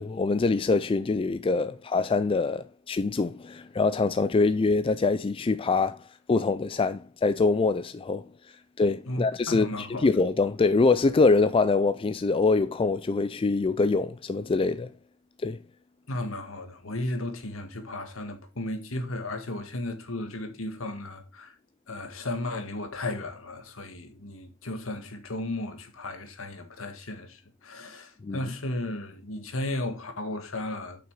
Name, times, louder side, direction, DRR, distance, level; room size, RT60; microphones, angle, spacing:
voice 1, 0.0-6.0 6.3-8.3 8.8-14.9 15.4-15.6 28.2-28.4, left 3 dB, 25° left, 0.3 m, -24 dB
voice 2, 9.1-10.1 16.1-21.5 21.9-31.1, left 1 dB, 70° left, 1.7 m, -35 dB
7.3 x 5.9 x 4.6 m
head